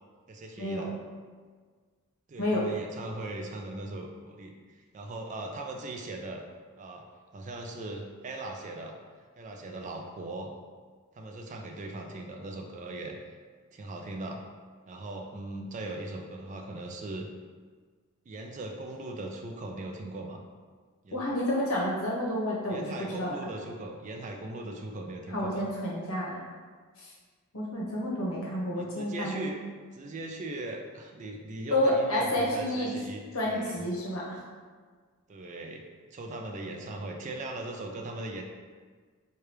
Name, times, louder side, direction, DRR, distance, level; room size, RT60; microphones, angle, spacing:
voice 1, 0.3-0.9 2.3-6.4 6.8-7.1 7.3-9.0 9.4-10.5 11.1-13.2 13.7-14.4 14.9-17.3 18.3-20.4 21.0-21.2 22.7-25.7 28.8-29.5 29.9-33.8 35.3-35.8 36.1-38.4, right 2 dB, 35° right, 2 dB, 0.3 m, -39 dB
voice 2, 21.1-23.4 25.3-26.4 27.0-27.1 27.5-29.5 31.7-32.9 33.3-34.4, left 1 dB, 65° left, -4 dB, 1.0 m, -29 dB
4.7 x 2.3 x 3.1 m, 1.6 s
head